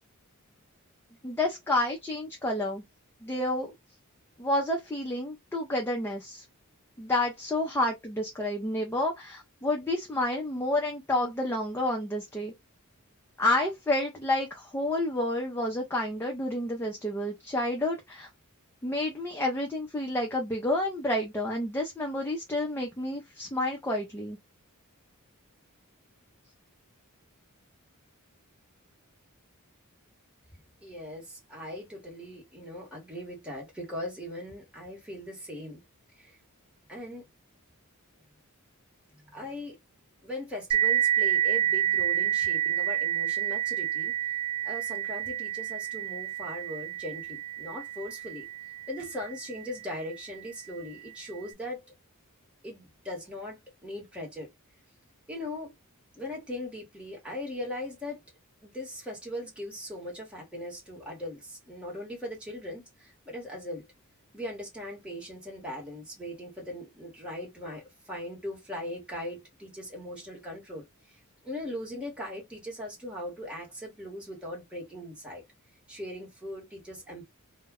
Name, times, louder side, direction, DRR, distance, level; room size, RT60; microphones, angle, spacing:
voice 1, 1.2-2.8 3.2-3.7 4.4-6.4 7.0-12.5 13.4-18.3 18.8-24.4, left 1 dB, 10° left, 0.4 m, -29 dB
voice 2, 30.8-35.8 36.2-36.3 36.9-37.3 39.3-39.8 40.2-44.1 44.6-48.5 48.9-51.8 52.6-54.5 55.3-55.7 56.1-58.2 58.6-63.9 64.3-70.8 71.4-75.4 75.9-77.2, left 1 dB, 5° right, 1.0 m, -39 dB
sound 1, 40.7-49.9, right 11 dB, 80° right, 0.3 m, -29 dB
2.2 x 2.1 x 3.4 m
head